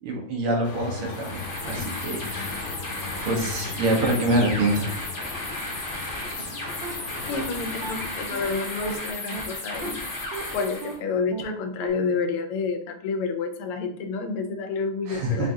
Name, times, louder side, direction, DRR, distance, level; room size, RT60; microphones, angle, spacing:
voice 1, 0.0-2.7 3.3-4.9 15.1-15.5, right 1 dB, 90° right, -1 dB, 2.0 m, -26 dB
sound 1, 0.6-8.2, left 3 dB, 70° left, 1.5 m, -37 dB
sound 2, 1.1-11.0, left 2 dB, 50° left, 0.9 m, -34 dB
sound 3, 6.4-6.5 6.8-6.9 7.3-7.4 7.8-7.9 8.3-8.4 8.8-8.9 9.3-9.4 9.8-9.9 10.3-10.4 10.8-10.9 11.3-11.4 11.8-11.9, right 6 dB, 70° right, 1.4 m, -35 dB
voice 2, 7.3-10.0 10.5-15.5, left 4 dB, 85° left, 7 dB, 1.5 m, -29 dB
4.6 x 2.6 x 3.6 m, 0.62 s
omnidirectional pair, 2.4 m